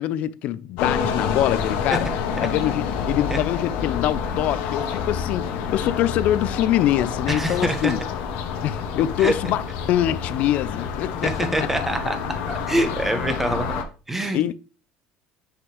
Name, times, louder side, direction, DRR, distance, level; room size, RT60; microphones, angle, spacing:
voice 1, 0.0-2.1 2.4-8.0 8.6-11.7 13.1-13.4 14.3-14.5, left 13 dB, 60° left, 0.4 m, -24 dB
sound 1, 0.8-13.8, left 6 dB, 75° left, 0.8 m, -28 dB
voice 2, 7.3-7.9 9.2-9.5 11.2-12.2 12.5-14.4, right 1 dB, 10° right, 1.0 m, -25 dB
6.3 x 5.0 x 3.0 m
cardioid pair, 120°, 3 cm